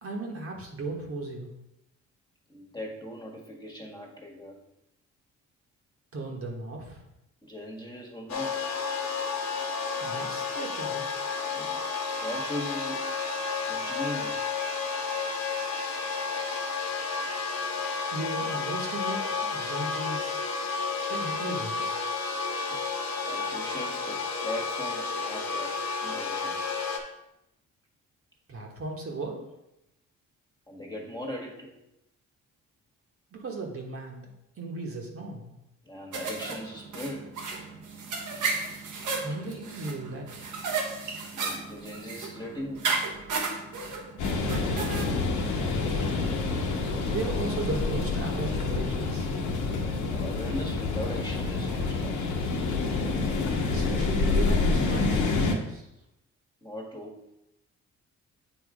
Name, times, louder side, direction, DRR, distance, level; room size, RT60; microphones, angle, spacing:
voice 1, 0.0-1.5 6.1-7.0 10.0-11.2 18.1-20.4 21.1-22.0 28.5-29.5 33.3-34.2 34.6-35.5 39.2-40.4 45.9-46.3 47.1-49.3 53.7-55.9, right 2 dB, 50° right, 0 dB, 1.5 m, -36 dB
voice 2, 2.5-4.6 7.4-8.6 11.5-11.8 12.1-13.1 13.7-14.5 23.3-25.8 26.0-26.8 30.7-31.7 35.8-37.3 39.3-39.4 41.3-42.9 50.1-52.3 56.6-57.3, left 1 dB, 15° left, 0 dB, 1.6 m, -39 dB
sound 1, 8.3-27.0, left 4 dB, 65° left, 1.2 m, -31 dB
sound 2, 36.1-45.0, right 4 dB, 80° right, 1.3 m, -34 dB
sound 3, 44.2-55.5, left 3 dB, 80° left, 1.2 m, -27 dB
8.2 x 3.2 x 4.8 m, 0.87 s
cardioid pair, 90°, 30 cm